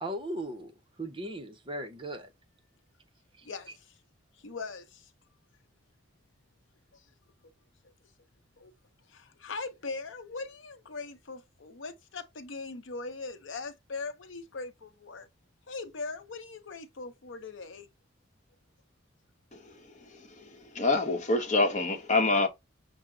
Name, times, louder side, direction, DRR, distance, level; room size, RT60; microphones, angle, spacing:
voice 1, 0.0-2.3 3.3-3.8, right 1 dB, 25° right, 0.7 m, -38 dB
voice 2, 3.4-3.8 4.4-5.1 6.9-7.0 8.6-8.7 9.1-15.3 15.7-17.9, left 3 dB, 75° left, 0.7 m, -40 dB
voice 3, 20.7-22.5, left 3 dB, 40° left, 0.9 m, -25 dB
6.0 x 2.1 x 3.7 m
head